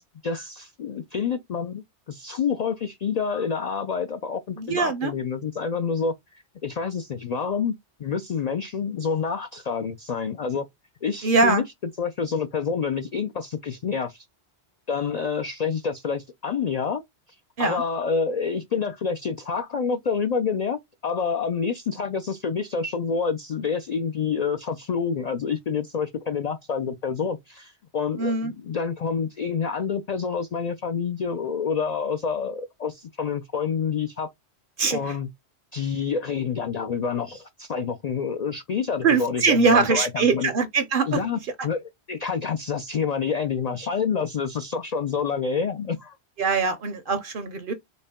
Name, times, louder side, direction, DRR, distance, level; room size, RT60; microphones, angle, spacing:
voice 1, 0.0-10.6 11.0-14.3 14.9-17.0 17.6-34.3 34.9-35.3 35.7-40.5 41.1-46.2, left 6 dB, 55° left, 0.4 m, -28 dB
voice 2, 4.6-5.1 11.2-11.6 17.6-17.8 28.2-28.5 34.8-35.1 39.0-41.2 46.4-47.7, right 4 dB, 55° right, 0.7 m, -22 dB
4.0 x 2.2 x 3.5 m
omnidirectional pair, 1.1 m